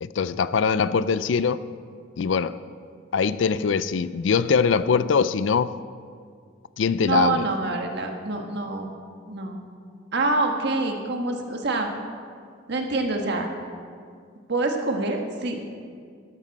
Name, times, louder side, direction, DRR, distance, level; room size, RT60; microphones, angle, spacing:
voice 1, 0.0-1.6 2.2-2.6 3.1-5.8 6.8-7.4, left 5 dB, 70° left, 0.4 m, -22 dB
voice 2, 7.0-8.9 9.3-9.6 10.1-11.9 12.7-13.5 14.5-15.6, right 3 dB, 60° right, 1.4 m, -26 dB
13.0 x 12.5 x 4.1 m
head